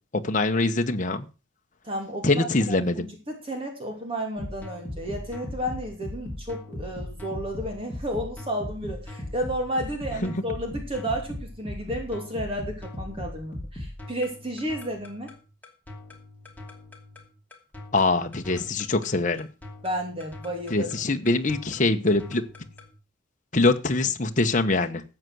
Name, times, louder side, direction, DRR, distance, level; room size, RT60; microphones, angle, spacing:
voice 1, 0.1-1.3 2.2-3.1 10.2-10.4 17.9-19.5 20.7-22.4 23.5-25.0, left 2 dB, 40° left, 1.0 m, -23 dB
voice 2, 1.8-15.3 19.8-20.9, equal, 30° right, 2.8 m, -32 dB
sound 1, 4.4-22.9, left 1 dB, 10° left, 2.7 m, -39 dB
13.5 x 8.0 x 6.2 m
head